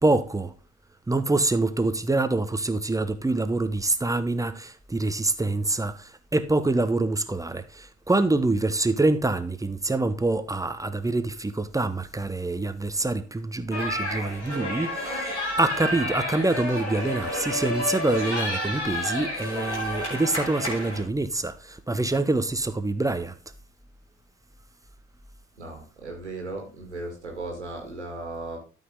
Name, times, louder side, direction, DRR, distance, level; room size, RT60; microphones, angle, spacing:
voice 1, 0.0-0.5 1.1-23.4, right 2 dB, 10° right, 1.0 m, -25 dB
sound 1, 13.7-21.0, left 1 dB, 90° left, 2.7 m, -30 dB
voice 2, 25.6-28.6, right 2 dB, 85° right, 2.0 m, -36 dB
12.5 x 5.5 x 3.7 m
figure-of-eight pair, 50°, 33 cm